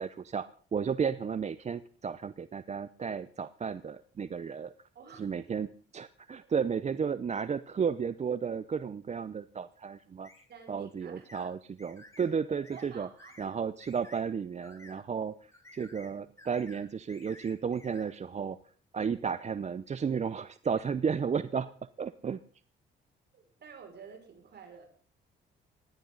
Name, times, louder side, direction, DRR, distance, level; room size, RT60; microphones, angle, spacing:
voice 1, 0.0-4.7 5.2-10.3 10.7-13.1 13.4-18.6 18.9-21.7 22.0-22.4, right 6 dB, 35° right, 15 dB, 0.7 m, -33 dB
voice 2, 4.9-5.3 6.4-6.5 10.5-11.4 12.7-13.4 20.7-20.8 23.3-24.8, right 6 dB, 55° right, 3 dB, 5.9 m, -50 dB
sound 1, 10.2-10.5 11.3-11.5 11.8-12.3 12.6-12.9 13.2-13.5 13.8-14.2 14.6-15.0 15.5-16.1 16.4-16.8 17.1-18.1, left 1 dB, 15° left, 7.3 m, -53 dB
19.5 x 16.5 x 4.0 m, 0.41 s
cardioid pair, 90°, 20 cm